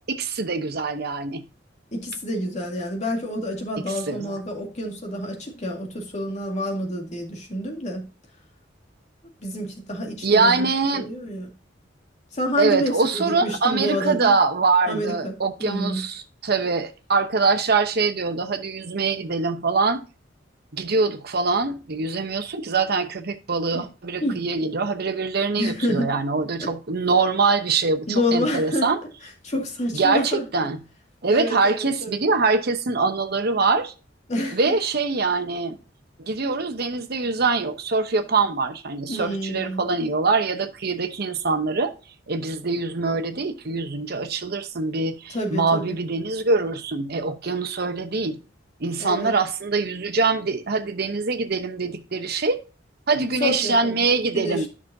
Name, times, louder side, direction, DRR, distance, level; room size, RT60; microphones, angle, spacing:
voice 1, 0.1-1.4 3.9-4.4 10.2-11.1 12.6-20.0 20.7-29.0 29.9-30.8 31.2-33.9 34.5-35.8 36.2-41.9 42.3-48.4 48.8-52.6 53.1-54.7, right 4 dB, 60° right, 0.9 m, -23 dB
voice 2, 1.9-8.0 9.4-10.7 10.9-11.5 12.3-14.4 14.9-15.3 15.6-16.0 23.7-23.9 24.2-24.4 25.6-26.1 26.6-26.7 28.1-28.9 29.4-30.4 31.3-32.2 34.3-34.7 39.1-39.9 45.3-46.0 49.0-49.3 53.4-54.0 54.3-54.7, left 1 dB, 40° left, 2.1 m, -28 dB
10.0 x 6.2 x 2.7 m
head